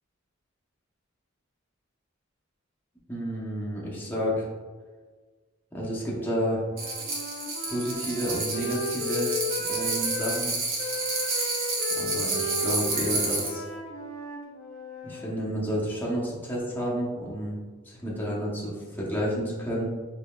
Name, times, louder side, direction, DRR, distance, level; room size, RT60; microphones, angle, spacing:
voice 1, 3.1-4.4 5.7-6.6 7.7-9.3 9.7-10.5 12.0-13.6 15.0-17.6 17.9-19.9, equal, 10° left, -6 dB, 0.7 m, -30 dB
Wind instrument woodwind instrument, 6.6-10.4 10.8-15.3, left 1 dB, 65° left, 0.9 m, -35 dB
sound 1, 6.8-13.5, right 3 dB, 75° right, 1.0 m, -30 dB
5.0 x 2.7 x 2.2 m, 1.4 s
head